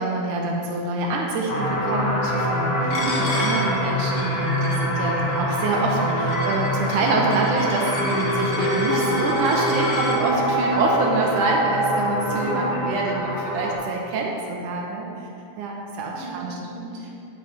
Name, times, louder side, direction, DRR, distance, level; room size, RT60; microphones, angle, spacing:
voice 1, 0.0-2.8 3.2-15.3 15.6-16.6, right 3 dB, 80° right, -1 dB, 2.3 m, -26 dB
sound 1, 1.5-13.7, equal, 40° left, 1.4 m, -24 dB
voice 2, 2.8-3.1 7.0-7.2 10.6-10.9 12.3-12.8 16.1-17.1, right 1 dB, 50° right, -4 dB, 2.0 m, -36 dB
Coin (dropping), 2.9-10.2, left 2 dB, 75° left, 1.0 m, -35 dB
9.5 x 6.3 x 4.2 m, 2.8 s
omnidirectional pair, 3.6 m